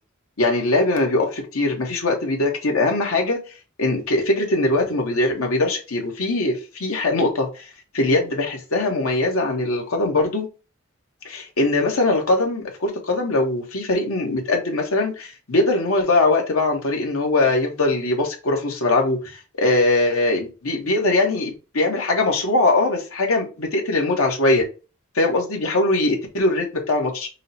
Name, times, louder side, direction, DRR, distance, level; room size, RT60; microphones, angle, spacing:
voice 1, 0.4-3.4 3.8-7.6 7.9-10.5 11.2-24.6 25.1-27.3, left 2 dB, 85° left, 1 dB, 1.2 m, -21 dB
5.4 x 2.2 x 4.2 m, 0.33 s
head